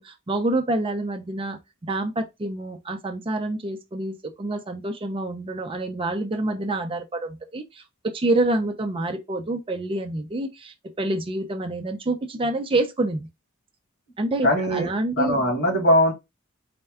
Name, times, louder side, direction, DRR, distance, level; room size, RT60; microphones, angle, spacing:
voice 1, 0.0-13.3 14.2-15.4, right 2 dB, 25° right, 0.4 m, -27 dB
voice 2, 14.4-14.9 15.2-16.1, left 1 dB, 50° left, 1.7 m, -20 dB
4.2 x 2.2 x 3.4 m
head